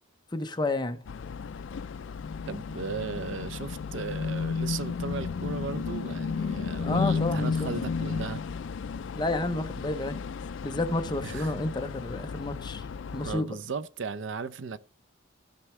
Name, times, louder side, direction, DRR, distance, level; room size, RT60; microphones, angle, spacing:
voice 1, 0.3-1.0 6.8-7.7 9.2-10.4 10.6-12.9 13.1-13.6, left 2 dB, 20° left, 0.7 m, -30 dB
sound 1, 1.1-13.4, left 5 dB, 65° left, 0.4 m, -33 dB
voice 2, 2.5-8.4 11.2-11.5 13.2-14.8, right 4 dB, 65° right, 0.5 m, -36 dB
15.0 x 5.9 x 3.2 m
head